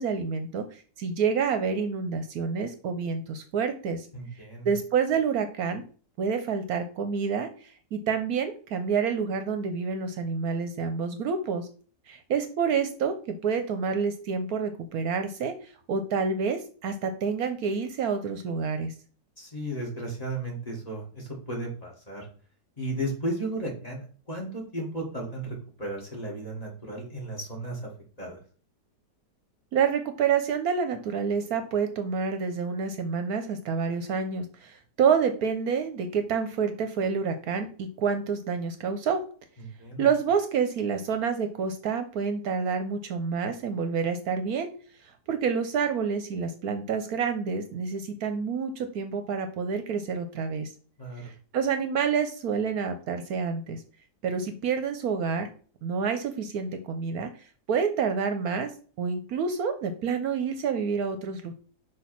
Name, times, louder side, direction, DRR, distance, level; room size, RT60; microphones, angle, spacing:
voice 1, 0.0-4.1 4.6-5.8 6.2-11.7 12.1-18.9 29.7-39.2 40.0-44.7 45.0-50.7 51.2-53.8 54.2-55.5 55.8-57.3 57.7-58.7 59.0-61.5, right 6 dB, 70° right, 7 dB, 1.1 m, -28 dB
voice 2, 4.1-4.7 19.4-22.3 22.8-27.9 28.2-28.4 39.6-40.1 51.0-51.2, right 1 dB, 25° left, -2 dB, 1.9 m, -34 dB
6.1 x 3.1 x 5.7 m, 0.41 s
omnidirectional pair, 1.8 m